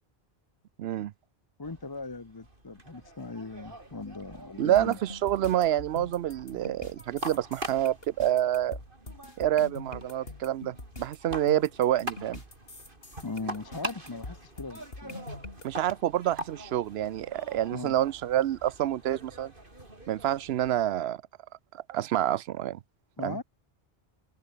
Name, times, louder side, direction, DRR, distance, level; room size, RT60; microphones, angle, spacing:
voice 1, 0.8-1.1 4.6-8.8 9.4-12.4 15.6-19.5 20.1-21.2 21.7-22.8 23.2-23.4, right 12 dB, 90° right, 0.8 m, -27 dB
voice 2, 1.6-5.0 13.2-15.2 17.7-17.9 23.2-23.4, left 3 dB, 25° left, 0.8 m, -39 dB
sound 1, 1.6-20.9, right 2 dB, 60° right, 4.9 m, -44 dB
sound 2, 4.8-15.7, left 2 dB, 70° left, 4.1 m, -44 dB
omnidirectional pair, 1.0 m